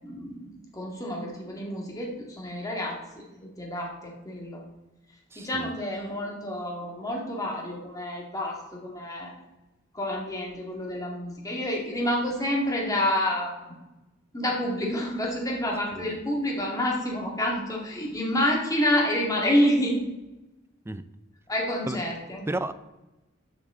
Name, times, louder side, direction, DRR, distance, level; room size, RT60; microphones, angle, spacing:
voice 1, 0.0-3.0 3.4-4.6 5.4-9.3 9.9-13.5 14.3-20.0 21.5-22.4, left 1 dB, 20° left, -2 dB, 2.1 m, -28 dB
voice 2, 5.3-5.7 15.9-16.2 20.9-21.0 21.9-22.0 22.5-22.7, right 2 dB, 10° right, 13 dB, 0.4 m, -32 dB
12.0 x 7.1 x 3.8 m, 1.0 s
head